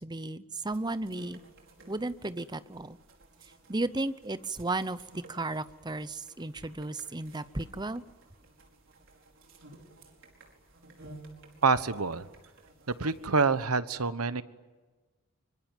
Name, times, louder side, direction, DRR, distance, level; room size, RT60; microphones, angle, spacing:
voice 1, 0.0-1.4 1.9-3.0 3.7-5.0 5.3-8.0, right 2 dB, 20° right, 14 dB, 0.8 m, -34 dB
sound 1, 0.7-13.6, right 2 dB, 60° right, 5.1 m, -55 dB
voice 2, 11.6-12.3 13.0-14.4, right 4 dB, 85° right, 13 dB, 1.2 m, -26 dB
25.0 x 25.0 x 9.2 m, 1.3 s
head